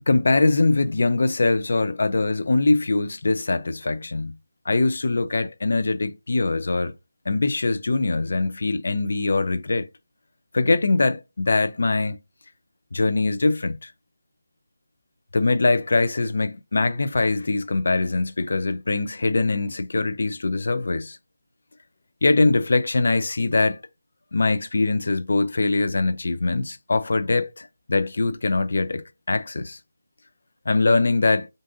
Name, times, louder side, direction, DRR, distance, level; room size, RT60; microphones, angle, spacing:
voice 1, 0.1-4.4 4.7-6.9 7.3-9.9 10.5-12.2 12.9-13.9 15.3-21.2 22.2-23.8 24.3-29.8 30.7-31.5, left 3 dB, 60° left, 0.4 m, -22 dB
2.6 x 2.5 x 3.6 m
figure-of-eight pair, 160°, 0 cm